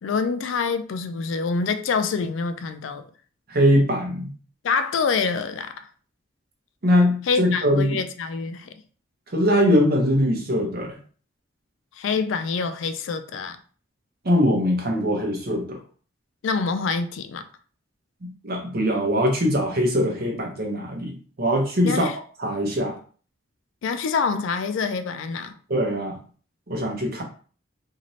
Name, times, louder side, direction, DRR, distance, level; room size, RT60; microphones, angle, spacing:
voice 1, 0.0-3.0 4.6-5.7 7.3-8.7 12.0-13.6 16.4-17.4 21.8-22.2 23.8-25.6, left 5 dB, 75° left, 0.4 m, -26 dB
voice 2, 3.5-4.3 6.8-8.0 9.3-11.0 14.2-15.8 18.2-22.1 22.4-23.0 25.7-26.2 26.7-27.2, equal, 50° right, 0.8 m, -22 dB
2.7 x 2.5 x 3.1 m
head